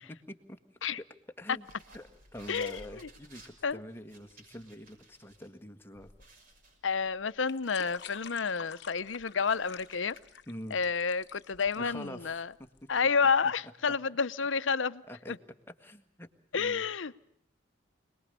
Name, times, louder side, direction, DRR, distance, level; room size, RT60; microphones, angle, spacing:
voice 1, 0.1-0.6 1.4-1.6 1.9-6.1 10.5-10.8 11.8-12.3 15.1-15.3 15.8-16.8, equal, 10° left, 1.7 m, -45 dB
sound 1, 1.5-5.5 5.8-5.9 6.2-8.4 8.8-10.2, right 2 dB, 45° right, 6.1 m, -57 dB
voice 2, 2.5-3.1 3.6-3.8 6.8-10.2 10.7-12.5 12.9-15.0 15.3-15.4 16.5-17.2, left 5 dB, 80° left, 0.8 m, -30 dB
sound 2, 6.0-13.0, left 7 dB, 60° left, 1.1 m, -50 dB
26.0 x 20.5 x 6.8 m
head